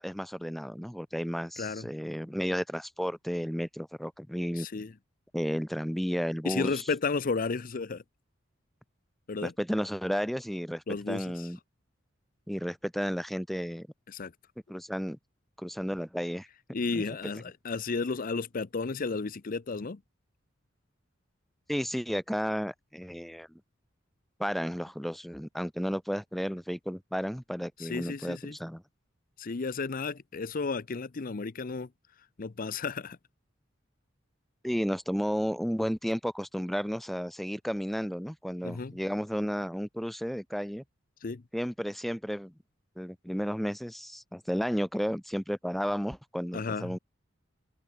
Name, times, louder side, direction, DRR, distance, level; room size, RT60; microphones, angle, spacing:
voice 1, 0.0-4.7 5.3-6.8 9.4-11.6 12.5-13.9 14.7-15.2 15.6-16.5 16.9-17.0 21.7-23.5 24.4-28.8 34.6-40.8 41.5-42.5 43.0-47.0, equal, ahead, 0.9 m, -33 dB
voice 2, 1.6-1.9 4.6-4.9 6.4-8.0 9.3-9.5 10.9-11.5 14.1-14.3 16.7-20.0 27.8-28.6 29.4-31.9 32.4-33.2 38.6-39.0 41.2-41.4 46.5-47.0, left 4 dB, 45° left, 0.6 m, -33 dB
head